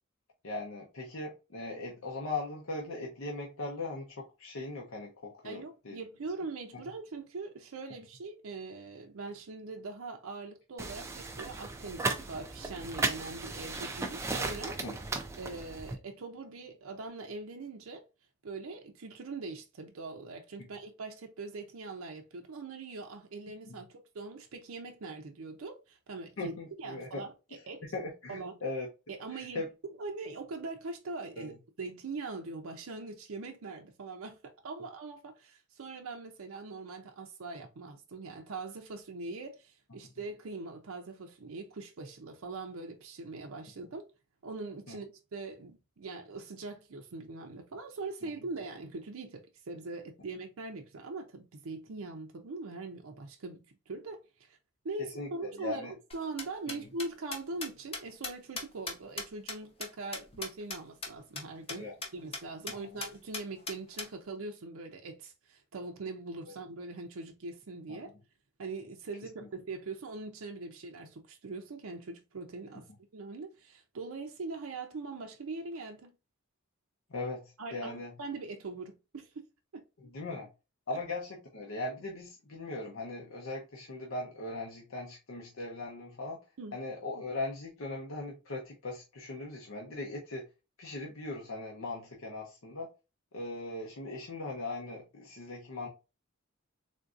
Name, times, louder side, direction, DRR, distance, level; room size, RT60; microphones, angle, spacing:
voice 1, 0.4-6.0 6.7-6.9 14.8-14.9 23.7-23.8 26.4-27.2 27.9-28.9 29.3-29.7 31.4-31.5 44.9-45.0 55.2-55.9 56.7-56.8 61.7-61.9 62.7-63.0 66.5-66.6 67.9-68.0 77.1-78.1 80.0-80.5 80.9-86.4 86.7-90.4 90.8-92.9 93.3-95.9, left 2 dB, 70° left, 0.7 m, -39 dB
voice 2, 5.4-14.8 15.4-18.0 18.4-27.8 28.3-28.5 29.1-44.0 44.4-54.6 54.8-55.9 56.1-68.1 68.6-72.9 73.1-76.1 77.6-79.5 79.7-79.8 80.9-81.0 86.6-86.7, right 3 dB, 75° right, 0.5 m, -42 dB
sound 1, 10.8-16.0, right 3 dB, 15° right, 0.3 m, -36 dB
sound 2, 56.1-60.8 61.0-61.1 61.4-61.5 61.7-61.8 62.0-62.4 62.7-62.8 63.0-64.1, left 3 dB, 25° left, 0.7 m, -38 dB
3.7 x 2.5 x 2.4 m
head